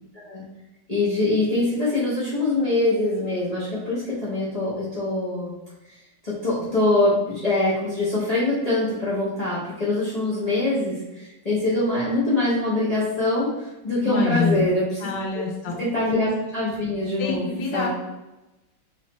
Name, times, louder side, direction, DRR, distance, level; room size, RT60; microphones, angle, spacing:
voice 1, 0.1-0.4 0.9-5.5 6.2-15.1 15.3-15.4 15.8-17.9, left 2 dB, 30° left, -8 dB, 0.8 m, -24 dB
voice 2, 14.0-14.7 15.0-15.8 17.2-17.9, left 4 dB, 85° left, 0 dB, 1.3 m, -26 dB
3.2 x 3.2 x 4.1 m, 1.0 s
omnidirectional pair, 1.9 m